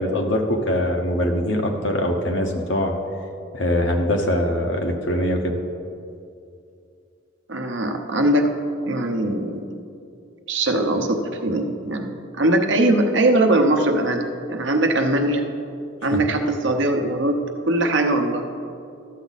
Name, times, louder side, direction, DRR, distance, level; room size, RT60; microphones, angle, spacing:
voice 1, 0.0-3.0 3.5-5.6, left 1 dB, 65° left, 3 dB, 1.0 m, -22 dB
voice 2, 7.5-8.5 8.9-9.6 10.5-15.4 16.0-17.4 17.7-18.5, right 1 dB, 65° right, 4 dB, 0.8 m, -21 dB
12.5 x 7.2 x 4.1 m, 2.5 s
head